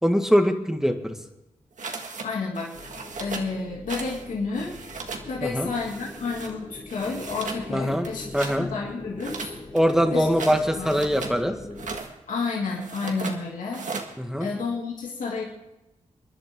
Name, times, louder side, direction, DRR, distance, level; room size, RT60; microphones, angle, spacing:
voice 1, 0.0-1.2 5.4-5.7 7.7-8.1 8.3-8.7 9.7-11.6 14.2-14.5, equal, 5° right, 5 dB, 1.8 m, -22 dB
sound 1, 1.8-2.3 2.5-3.5 3.9-4.2 4.5-5.3 5.7-6.5 6.9-7.6 8.0-8.6 9.2-11.4 11.7-12.1 12.8-13.4 13.7-14.1, right 4 dB, 70° right, 1.8 m, -36 dB
voice 2, 1.9-2.7 3.2-4.8 5.2-9.6 10.1-10.3 10.8-11.0 12.3-13.9 14.4-15.4, left 4 dB, 75° left, -3 dB, 2.8 m, -31 dB
sound 2, 2.7-12.0, left 2 dB, 35° left, 2.8 m, -42 dB
27.0 x 10.5 x 3.8 m, 0.94 s
cardioid pair, 60°, 13 cm